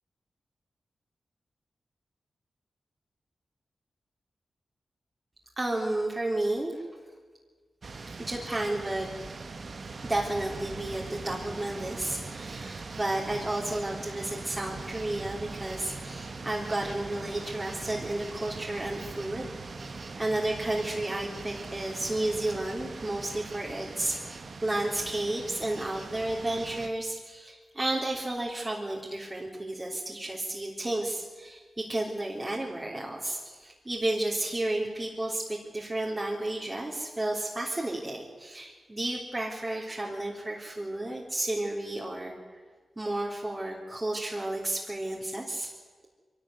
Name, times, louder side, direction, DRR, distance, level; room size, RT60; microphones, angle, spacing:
voice 1, 5.6-6.8 8.2-9.1 10.0-19.5 19.8-42.6 43.0-45.7, right 1 dB, 25° right, -2 dB, 3.5 m, -32 dB
sound 1, 7.8-26.9, right 3 dB, 60° right, 1.5 m, -41 dB
23.5 x 12.5 x 9.7 m, 1.5 s
cardioid pair, 45°, 0 cm